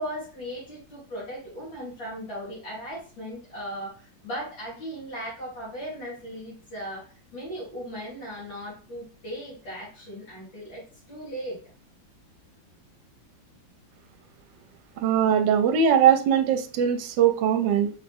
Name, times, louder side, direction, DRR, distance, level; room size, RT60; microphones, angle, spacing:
voice 1, 0.0-11.6, equal, 70° left, -8 dB, 2.6 m, -37 dB
voice 2, 15.0-17.9, right 8 dB, 75° right, 7 dB, 1.2 m, -21 dB
5.0 x 3.0 x 3.6 m, 0.39 s
omnidirectional pair, 2.1 m